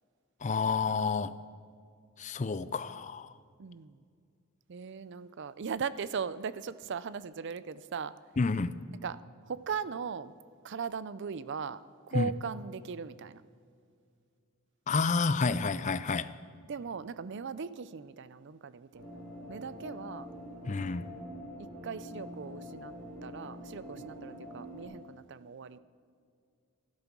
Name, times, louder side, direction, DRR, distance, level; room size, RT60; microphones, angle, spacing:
voice 1, 0.4-1.4 2.2-3.3 8.4-8.7 12.1-12.3 14.9-16.3 20.7-21.0, left 4 dB, 35° left, 0.4 m, -29 dB
voice 2, 3.6-4.0 4.7-8.2 9.0-10.3 10.6-11.8 12.1-13.4 16.7-19.2 19.5-20.3 21.6-22.9 23.2-25.8, right 6 dB, 55° right, 0.5 m, -39 dB
sound 1, 18.9-24.8, equal, 85° right, 4.0 m, -45 dB
13.5 x 12.0 x 6.1 m
head